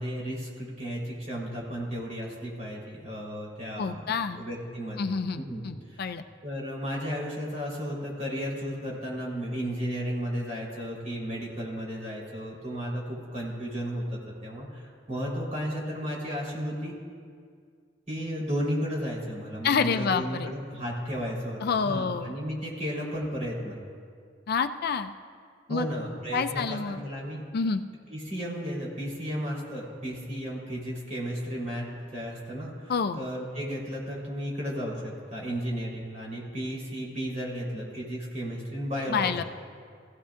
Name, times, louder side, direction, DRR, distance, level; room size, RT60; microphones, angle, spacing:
voice 1, 0.0-5.0 5.4-6.1 6.4-16.9 18.1-23.8 25.7-27.4 28.1-39.4, equal, 40° right, -5 dB, 3.9 m, -34 dB
voice 2, 3.8-4.4 5.0-6.2 19.6-20.5 21.6-22.4 24.5-25.1 25.7-25.9 26.3-27.0 27.5-27.8 32.9-33.2 39.1-39.4, left 5 dB, 55° left, 9 dB, 0.4 m, -28 dB
18.5 x 16.0 x 2.5 m, 2.1 s
head